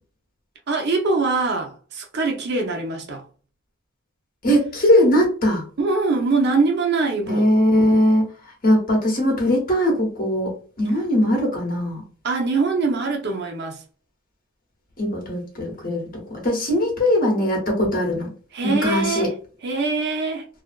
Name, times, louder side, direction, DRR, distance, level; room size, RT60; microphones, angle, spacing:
voice 1, 0.7-3.2 5.8-7.5 12.2-13.8 18.5-19.3 19.6-20.4, right 3 dB, 55° right, 0.6 m, -23 dB
voice 2, 4.4-5.6 7.3-8.3 8.6-12.0 15.0-18.3 18.6-19.3, left 1 dB, 45° left, 1.0 m, -20 dB
2.4 x 2.2 x 2.3 m
head